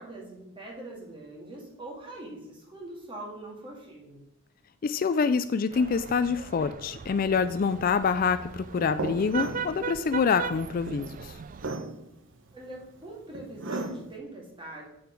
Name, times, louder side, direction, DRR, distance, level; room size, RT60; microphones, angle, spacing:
voice 1, 0.0-4.2 12.5-14.9, right 2 dB, 25° right, -2 dB, 2.2 m, -42 dB
voice 2, 4.8-11.4, left 5 dB, 40° left, 12 dB, 0.3 m, -26 dB
sound 1, 5.7-11.7, right 6 dB, 40° right, 0.3 m, -39 dB
sound 2, 7.3-14.2, right 2 dB, 60° right, 0.8 m, -38 dB
8.0 x 6.7 x 4.6 m, 0.82 s
head